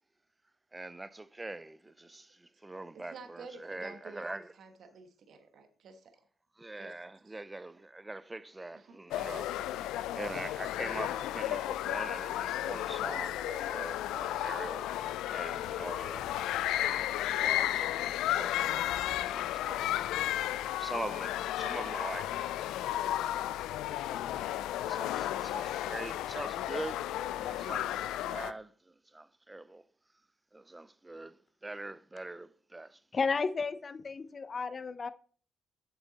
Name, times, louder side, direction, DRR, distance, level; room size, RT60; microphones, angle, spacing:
voice 1, 0.7-4.5 6.6-14.9 15.3-16.4 16.8-23.2 24.8-28.0 28.3-29.8 30.5-33.0, right 2 dB, 15° right, 0.4 m, -43 dB
voice 2, 2.9-4.2 4.5-6.1 6.8-7.0 7.2-7.4 8.7-9.0 9.6-9.7, right 4 dB, 65° right, 1.2 m, -51 dB
sound 1, 9.1-28.5, left 13 dB, 90° left, 0.3 m, -33 dB
voice 3, 33.1-35.1, left 4 dB, 35° left, 0.6 m, -33 dB
7.5 x 7.0 x 4.1 m
cardioid pair, 90°, 0 cm